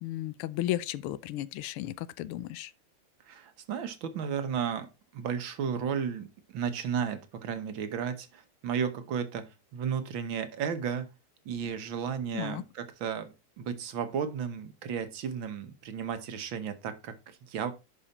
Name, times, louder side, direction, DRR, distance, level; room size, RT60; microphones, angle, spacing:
voice 1, 0.0-2.7 12.3-12.6, left 14 dB, 85° left, 1.5 m, -34 dB
voice 2, 3.3-4.9 5.1-11.1 11.5-17.7, right 7 dB, 65° right, 1.8 m, -34 dB
11.0 x 4.9 x 4.1 m
omnidirectional pair, 2.4 m